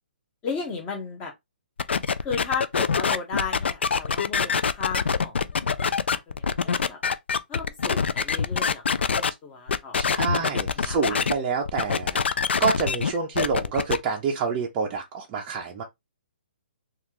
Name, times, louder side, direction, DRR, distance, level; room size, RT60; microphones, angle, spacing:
voice 1, 0.4-1.3 2.2-7.0 7.5-11.2, left 5 dB, 20° left, 0.9 m, -35 dB
sound 1, 1.8-9.3 9.7-11.3 11.7-14.0, left 6 dB, 85° left, 0.4 m, -24 dB
voice 2, 9.9-12.2 12.6-15.8, right 5 dB, 20° right, 0.5 m, -27 dB
3.2 x 2.4 x 2.8 m
hypercardioid pair, 160°, 6 cm